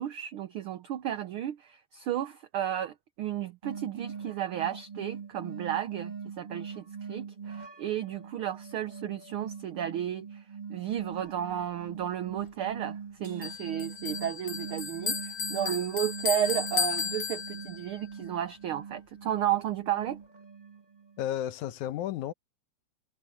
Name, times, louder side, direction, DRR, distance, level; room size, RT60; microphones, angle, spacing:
voice 1, 0.0-10.4 10.7-20.2, right 10 dB, 70° right, 1.3 m, -33 dB
sound 1, 3.6-21.3, right 6 dB, 55° right, 0.4 m, -42 dB
Crash cymbal, 13.2-15.0, right 3 dB, 25° right, 6.3 m, -61 dB
Bell, 13.4-17.9, left 6 dB, 55° left, 1.4 m, -34 dB
voice 2, 21.2-22.3, left 12 dB, 85° left, 2.4 m, -32 dB
omnidirectional pair, 3.3 m